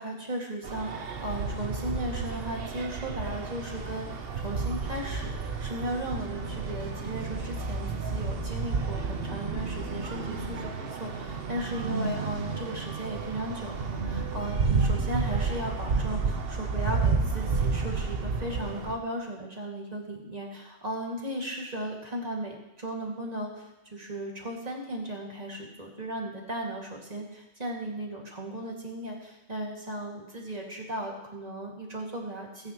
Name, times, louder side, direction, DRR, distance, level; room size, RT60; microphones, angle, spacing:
voice 1, 0.0-32.7, right 1 dB, 35° right, -1 dB, 2.4 m, -36 dB
sound 1, 0.6-18.9, right 4 dB, 55° right, 1.1 m, -31 dB
20.5 x 9.6 x 3.1 m, 0.95 s
omnidirectional pair, 1.2 m